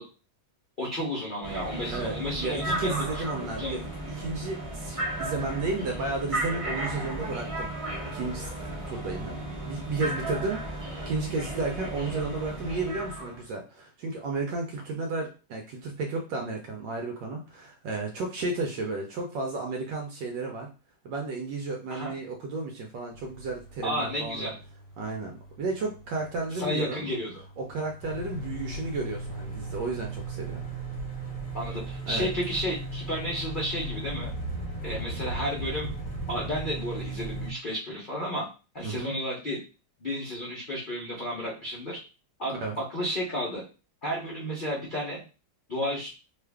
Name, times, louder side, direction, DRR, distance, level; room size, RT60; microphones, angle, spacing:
voice 1, 0.8-3.0 3.6-3.8 21.9-22.1 23.8-24.6 26.5-27.4 31.5-34.3 34.8-35.9 36.3-38.5 38.7-39.6 40.0-42.0 42.4-43.6 44.0-45.2 45.7-46.1, equal, 75° left, -4 dB, 0.4 m, -32 dB
sound 1, 1.4-13.4, right 1 dB, 25° right, 0.7 m, -34 dB
voice 2, 1.9-3.9 4.2-7.7 8.1-8.5 8.9-20.7 21.0-24.5 25.0-27.1 27.6-30.6 32.1-32.3 38.8-39.2 42.5-42.8, right 3 dB, 70° right, 1 dB, 1.2 m, -33 dB
sound 2, 23.1-30.8, right 1 dB, 25° left, 0.9 m, -51 dB
sound 3, 28.0-37.5, right 2 dB, 50° left, 1.2 m, -36 dB
3.1 x 2.3 x 3.4 m, 0.33 s
omnidirectional pair, 2.2 m